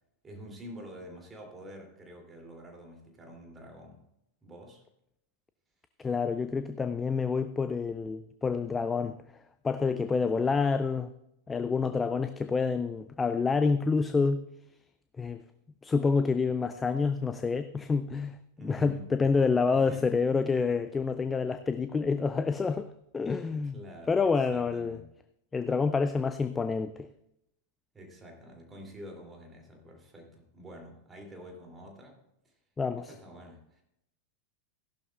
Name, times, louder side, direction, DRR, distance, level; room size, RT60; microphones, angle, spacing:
voice 1, 0.2-4.0 4.4-4.8 18.6-19.1 19.7-20.2 23.7-25.1 27.9-32.2 33.0-33.8, equal, 15° right, 1 dB, 2.8 m, -47 dB
voice 2, 6.0-9.2 9.6-11.1 11.5-14.4 15.2-15.4 15.8-18.4 18.6-22.9 23.1-23.8 24.1-25.0 25.5-27.1 32.8-33.1, left 4 dB, 15° left, 11 dB, 0.4 m, -28 dB
15.5 x 11.5 x 2.4 m, 0.81 s
figure-of-eight pair, 90°, 0 cm